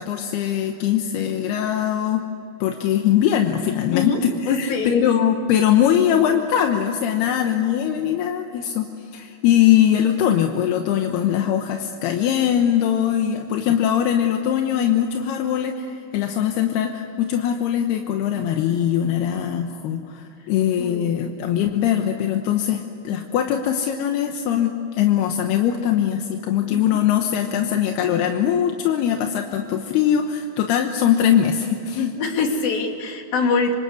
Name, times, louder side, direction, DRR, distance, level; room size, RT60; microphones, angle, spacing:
voice 1, 0.0-2.2 2.6-32.1, left 10 dB, 85° left, 4 dB, 3.2 m, -21 dB
voice 2, 4.5-5.0 11.4-11.5 20.8-21.3 26.7-27.0 32.2-33.8, left 4 dB, 65° left, 2 dB, 4.6 m, -24 dB
27.5 x 26.5 x 8.3 m, 2.9 s
omnidirectional pair, 4.6 m